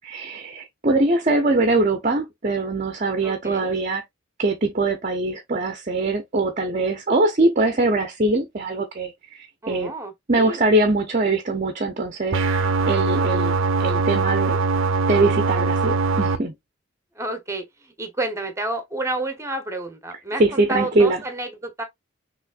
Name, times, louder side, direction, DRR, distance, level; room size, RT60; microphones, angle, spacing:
voice 1, 0.0-4.0 4.4-9.9 10.3-13.5 13.8-14.6 15.1-16.5 20.4-21.2, right 2 dB, 35° right, 0.8 m, -22 dB
voice 2, 3.2-3.7 9.6-10.6 17.2-21.8, right 2 dB, 15° right, 1.1 m, -30 dB
sound 1, 12.3-16.4, right 3 dB, 75° right, 0.7 m, -21 dB
6.1 x 3.2 x 2.5 m
head